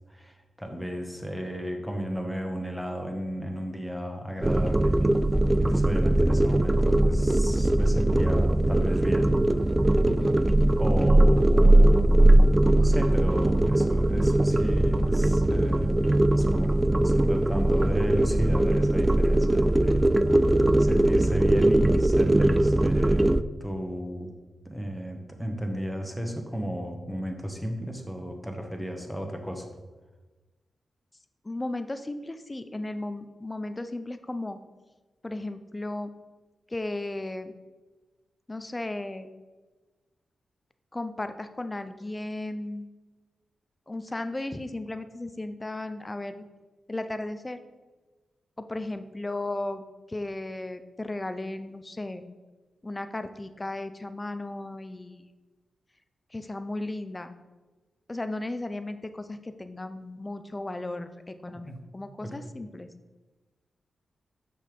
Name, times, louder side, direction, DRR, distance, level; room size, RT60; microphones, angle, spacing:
voice 1, 0.1-5.0 5.6-9.4 10.8-12.2 12.6-20.1 20.8-24.3 24.6-29.7 61.6-61.8 62.2-62.3, equal, ahead, 4 dB, 1.3 m, -34 dB
sound 1, 4.4-23.4, right 1 dB, 20° right, 0.3 m, -21 dB
voice 2, 10.1-10.5 31.4-34.6 35.2-36.1 36.7-37.5 38.5-39.3 40.9-42.9 43.9-46.3 46.9-47.6 48.7-49.8 50.1-52.2 52.8-55.3 56.3-57.3 58.1-62.9, left 2 dB, 25° left, 10 dB, 0.7 m, -35 dB
6.5 x 5.6 x 5.2 m, 1.2 s
cardioid pair, 50°, 0 cm